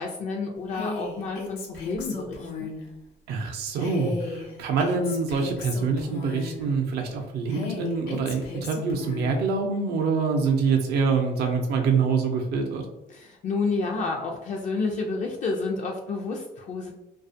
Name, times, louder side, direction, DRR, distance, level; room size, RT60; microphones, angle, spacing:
voice 1, 0.0-2.7 13.1-16.9, left 3 dB, 45° left, 0 dB, 0.4 m, -30 dB
Female speech woman speaking, 0.7-2.8 3.8-6.7 7.5-9.4, left 3 dB, 90° left, 0.7 m, -35 dB
voice 2, 3.3-12.8, right 4 dB, 75° right, 3 dB, 0.5 m, -25 dB
2.4 x 2.3 x 2.6 m, 0.97 s
cardioid pair, 110°, 17 cm